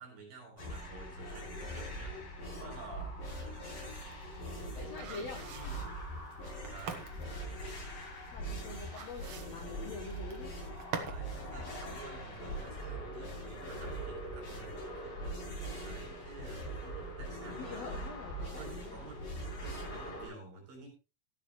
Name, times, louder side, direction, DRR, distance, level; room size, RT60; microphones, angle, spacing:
voice 1, 0.0-3.2 4.7-5.9 6.6-7.1 8.6-8.9 11.0-15.3 15.8-17.7 17.9-18.1 18.6-19.3 19.6-20.9, right 3 dB, 55° right, 3 dB, 7.9 m, -51 dB
sound 1, 0.6-20.3, right 1 dB, 50° left, 9.7 m, -42 dB
sound 2, 3.9-11.3 11.6-11.7, right 6 dB, 80° right, 1.2 m, -45 dB
voice 2, 4.7-5.4 8.3-10.5 17.6-19.0, left 4 dB, 75° left, 5 dB, 1.5 m, -45 dB
14.5 x 11.5 x 3.1 m, 0.30 s
omnidirectional pair, 5.0 m